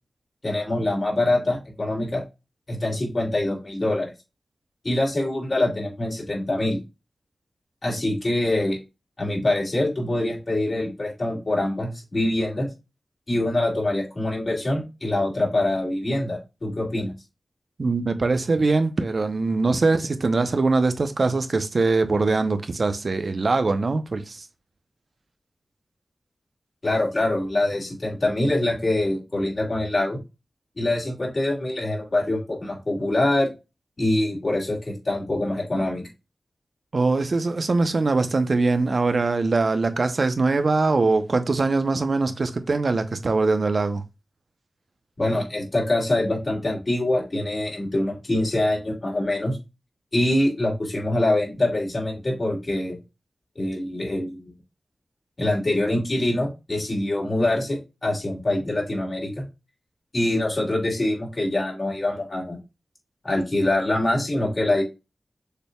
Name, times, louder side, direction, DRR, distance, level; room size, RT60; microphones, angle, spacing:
voice 1, 0.4-2.2 2.7-4.1 4.8-6.8 7.8-8.8 9.2-12.7 13.3-17.1 26.8-30.2 30.8-33.5 34.0-36.0 45.2-49.6 50.1-53.0 53.6-54.5 55.4-59.4 60.1-62.6 63.2-64.8, left 1 dB, 55° left, 2.7 m, -24 dB
voice 2, 17.8-24.4 36.9-44.0, right 3 dB, 65° right, 0.7 m, -22 dB
6.6 x 3.4 x 2.3 m
cardioid pair, 50°, 0 cm